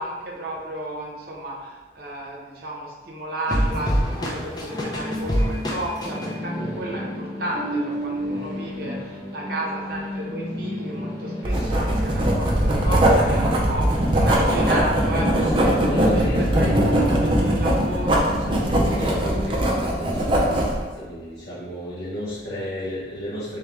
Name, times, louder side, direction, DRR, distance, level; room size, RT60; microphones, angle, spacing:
voice 1, 0.0-16.2 16.5-18.3, right 1 dB, 55° right, -3 dB, 0.9 m, -32 dB
sound 1, 3.5-19.6, equal, 20° left, 0.5 m, -30 dB
voice 2, 5.3-7.0 8.2-8.7 10.9-11.0 11.5-11.8 13.8-13.9 15.4-17.0 18.4-23.6, equal, 55° left, -9 dB, 0.9 m, -34 dB
Writing, 11.4-20.8, right 1 dB, 25° right, 0.5 m, -21 dB
3.4 x 3.2 x 3.5 m, 1.3 s
head